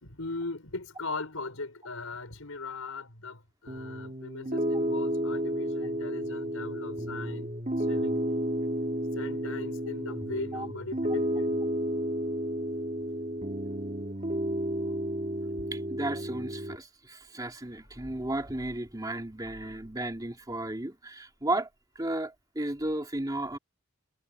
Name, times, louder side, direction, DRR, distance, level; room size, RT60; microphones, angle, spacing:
voice 1, 0.0-7.5 7.9-8.2 9.1-11.6, left 3 dB, 75° left, 5.5 m, -39 dB
Piano, 3.7-16.8, equal, 35° right, 3.2 m, -32 dB
voice 2, 15.7-21.7 22.0-23.6, right 1 dB, 20° right, 2.9 m, -34 dB
head